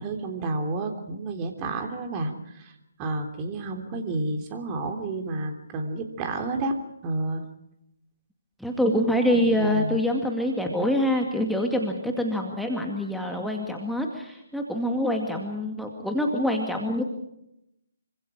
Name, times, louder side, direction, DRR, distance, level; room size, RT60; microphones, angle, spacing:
voice 1, 0.0-2.7 3.0-6.7 7.0-7.4 9.3-10.0, right 2 dB, 20° right, 4 dB, 3.3 m, -30 dB
voice 2, 8.6-17.1, left 1 dB, ahead, 1 dB, 2.2 m, -25 dB
27.0 x 25.0 x 5.0 m, 0.84 s
figure-of-eight pair, 145°, 0 cm